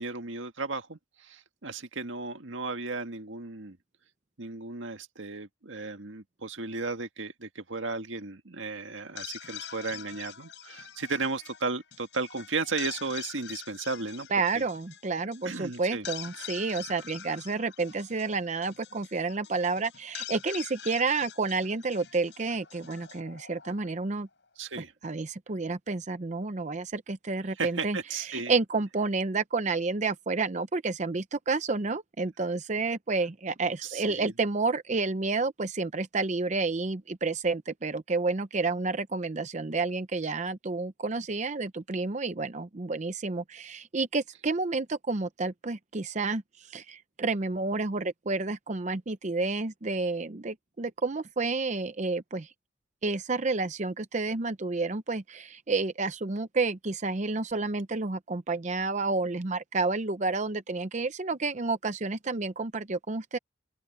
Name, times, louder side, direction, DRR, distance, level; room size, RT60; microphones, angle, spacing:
voice 1, 0.0-3.8 4.4-14.3 14.6-14.7 15.4-16.1 24.6-24.9 27.6-28.5 33.8-34.3, right 3 dB, 85° right, 1.8 m, -35 dB
sound 1, 9.0-24.2, left 10 dB, 65° left, 5.9 m, -45 dB
voice 2, 14.3-24.3 25.0-52.5 53.0-63.4, right 3 dB, 40° right, 0.7 m, -30 dB
open air
head